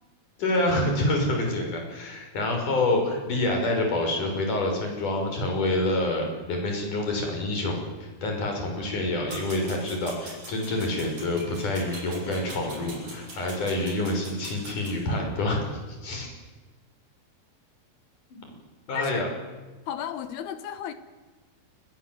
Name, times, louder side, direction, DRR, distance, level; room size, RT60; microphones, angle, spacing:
voice 1, 0.4-15.6 15.9-16.3 18.3-18.4 18.9-19.3, left 1 dB, 45° left, 7.3 m, -27 dB
sound 1, 9.3-15.0, right 2 dB, 40° right, 7.9 m, -43 dB
voice 2, 19.0-19.3 19.9-20.9, left 9 dB, 70° left, 3.0 m, -34 dB
28.0 x 21.0 x 7.9 m
omnidirectional pair, 5.1 m